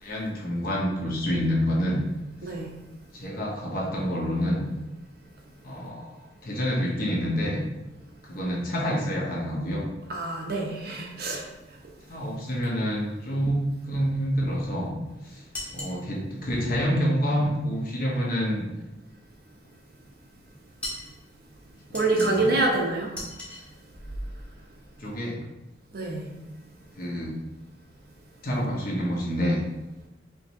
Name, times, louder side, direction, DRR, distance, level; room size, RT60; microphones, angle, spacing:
voice 1, 0.0-2.0 3.1-4.6 5.6-7.6 8.3-9.9 12.1-14.9 15.2-15.4 15.7-18.6 21.9-22.5 25.0-25.4 27.0-27.4 28.4-29.6, equal, 50° left, -4 dB, 1.0 m, -27 dB
voice 2, 10.1-11.5 21.9-23.1 25.9-26.3, right 2 dB, 55° right, 0 dB, 0.7 m, -26 dB
sound 1, 15.5-16.0 20.8-21.1 21.9-22.5 23.1-23.6, left 1 dB, 5° left, 1.0 m, -37 dB
5.1 x 3.0 x 2.7 m, 0.99 s
head